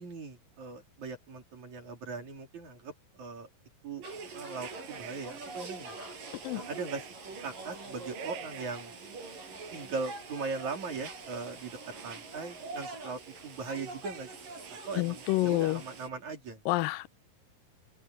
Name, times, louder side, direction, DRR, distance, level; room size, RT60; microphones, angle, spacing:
voice 1, 0.0-3.5 3.8-4.0 4.3-5.9 6.5-7.1 7.4-8.9 9.7-11.8 12.0-14.3 14.7-16.6, right 4 dB, 55° right, 5.1 m, -39 dB
sound 1, 4.0-16.1, right 4 dB, 75° right, 7.3 m, -44 dB
voice 2, 15.0-15.8 16.7-17.1, left 18 dB, 85° left, 2.4 m, -28 dB
open air
omnidirectional pair, 3.9 m